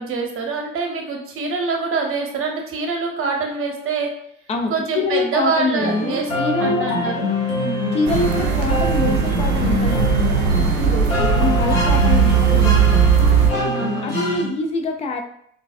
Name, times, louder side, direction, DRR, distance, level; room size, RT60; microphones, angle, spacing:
voice 1, 0.0-4.1 4.7-7.2 7.5-7.8 13.5-14.1, right 4 dB, 35° right, 1 dB, 0.9 m, -25 dB
voice 2, 4.5-7.1 7.9-13.1 14.0-15.2, left 3 dB, 15° left, 4 dB, 0.4 m, -25 dB
sound 1, 5.8-14.4, left 2 dB, 70° left, 1.2 m, -24 dB
sound 2, 8.1-13.5, right 7 dB, 75° right, 0.6 m, -18 dB
3.7 x 2.3 x 2.5 m, 0.67 s
figure-of-eight pair, 70°, 40 cm